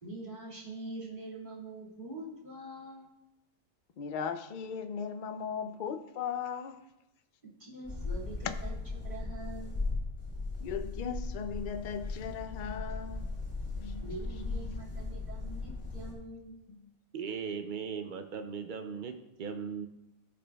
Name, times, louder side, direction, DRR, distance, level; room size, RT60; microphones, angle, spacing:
voice 1, 0.0-3.1 7.6-8.8 9.0-9.7 14.0-16.6, right 2 dB, 35° right, 2.1 m, -44 dB
voice 2, 4.0-6.8 10.6-13.3 13.7-14.1 14.5-15.1 16.7-16.8, left 7 dB, 65° left, 0.5 m, -38 dB
sound 1, 7.8-16.1, left 3 dB, 20° left, 1.7 m, -37 dB
voice 3, 17.1-19.9, right 6 dB, 75° right, 0.4 m, -38 dB
14.5 x 5.0 x 2.3 m
omnidirectional pair, 1.4 m